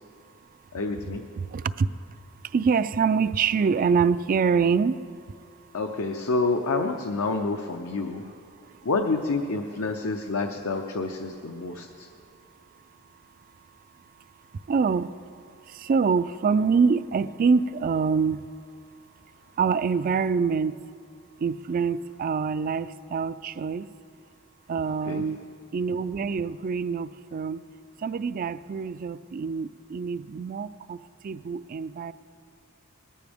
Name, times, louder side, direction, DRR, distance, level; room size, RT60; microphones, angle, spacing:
voice 1, 0.7-1.3 5.7-8.3 8.8-12.1 24.9-25.3, left 3 dB, 70° left, 5 dB, 0.7 m, -28 dB
voice 2, 1.4-1.9 2.4-5.3 8.7-8.8 14.5-15.2 15.6-18.5 19.6-20.7 21.4-23.9 24.7-25.4 25.7-27.6 28.0-32.1, right 5 dB, 40° right, 15 dB, 0.3 m, -25 dB
19.0 x 14.0 x 3.5 m, 2.4 s
head